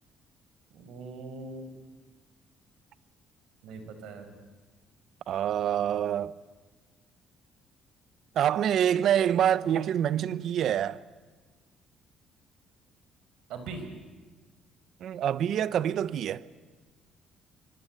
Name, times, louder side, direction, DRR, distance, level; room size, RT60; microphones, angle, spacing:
voice 1, 0.7-1.6 3.6-4.3 13.5-13.9, right 3 dB, 80° right, 5.4 m, -41 dB
voice 2, 5.3-6.3 8.4-11.0 15.0-16.4, right 10 dB, 65° right, 0.9 m, -26 dB
25.5 x 24.5 x 9.2 m
cardioid pair, 105°, 0 cm